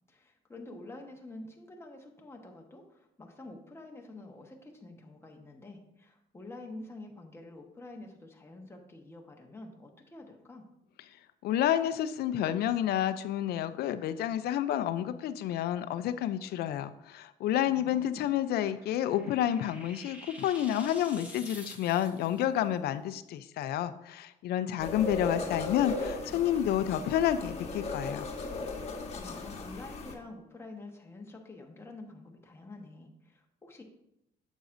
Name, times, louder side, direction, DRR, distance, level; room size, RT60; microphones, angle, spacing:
voice 1, 0.1-10.7 17.7-18.3 29.1-33.8, left 2 dB, 15° left, 1 dB, 1.2 m, -48 dB
voice 2, 11.4-28.3, left 11 dB, 70° left, 12 dB, 0.5 m, -30 dB
sound 1, 18.3-22.4, equal, 10° right, 1.4 m, -49 dB
sound 2, 24.8-30.1, left 3 dB, 40° left, 1.5 m, -37 dB
9.1 x 7.2 x 2.6 m, 0.84 s
cardioid pair, 110°, 17 cm